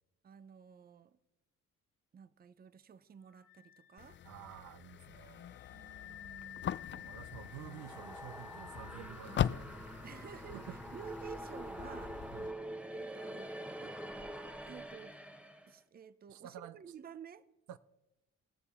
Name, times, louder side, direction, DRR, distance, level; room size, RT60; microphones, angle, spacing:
voice 1, 0.2-1.2 2.1-4.2 5.7-6.8 10.0-12.2 12.9-14.0 14.6-15.2 15.7-17.5, right 7 dB, 30° right, 0.6 m, -52 dB
Wind instrument woodwind instrument, 3.3-10.7, left 11 dB, 85° left, 1.3 m, -54 dB
sound 1, 4.0-12.5, left 10 dB, 40° left, 0.4 m, -41 dB
voice 2, 4.2-5.6 6.9-9.7 10.5-10.8 12.3-12.5 16.3-16.8 17.7-17.8, right 12 dB, 75° right, 0.6 m, -50 dB
sound 2, 7.4-15.7, right 1 dB, 5° right, 0.9 m, -45 dB
19.0 x 6.8 x 4.2 m
cardioid pair, 90°, 30 cm